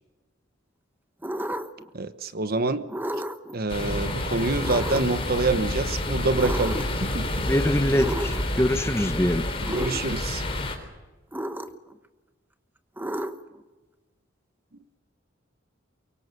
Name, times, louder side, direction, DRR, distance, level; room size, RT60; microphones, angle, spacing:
sound 1, 1.2-1.9 2.9-3.5 4.6-5.2 6.4-7.0 8.0-8.6 9.6-10.0 11.3-11.9 13.0-13.6, right 1 dB, 10° right, 1.1 m, -32 dB
voice 1, 1.9-2.9 3.5-7.5 9.6-10.4, right 3 dB, 50° right, 1.2 m, -27 dB
sound 2, 3.7-10.8, left 1 dB, 30° left, 3.9 m, -29 dB
voice 2, 7.4-9.5, equal, 15° left, 1.1 m, -24 dB
23.5 x 23.5 x 6.8 m
head